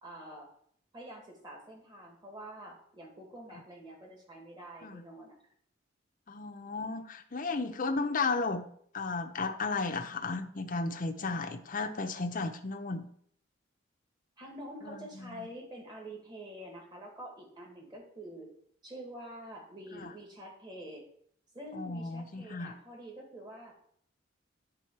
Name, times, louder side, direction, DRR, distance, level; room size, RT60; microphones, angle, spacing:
voice 1, 0.0-0.5 0.9-5.4 14.4-18.5 18.8-21.1 21.5-23.8, right 1 dB, 25° right, 0 dB, 2.0 m, -47 dB
voice 2, 6.3-8.7 8.9-13.1 14.8-15.5 20.0-20.1 21.7-22.7, left 3 dB, 45° left, 5 dB, 0.7 m, -34 dB
10.0 x 3.7 x 4.6 m, 0.63 s
head